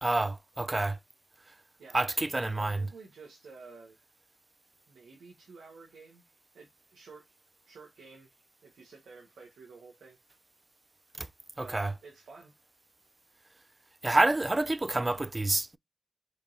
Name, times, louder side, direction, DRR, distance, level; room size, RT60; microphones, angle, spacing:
voice 1, 0.0-1.0 1.9-2.8 11.2-11.3 11.6-11.9 14.0-15.8, right 2 dB, 25° right, 0.3 m, -28 dB
voice 2, 1.8-4.0 4.9-6.2 6.5-7.3 7.7-8.3 8.6-10.2 11.6-12.5, right 4 dB, 85° right, 1.1 m, -51 dB
4.5 x 2.9 x 2.6 m
cardioid pair, 50°, 0 cm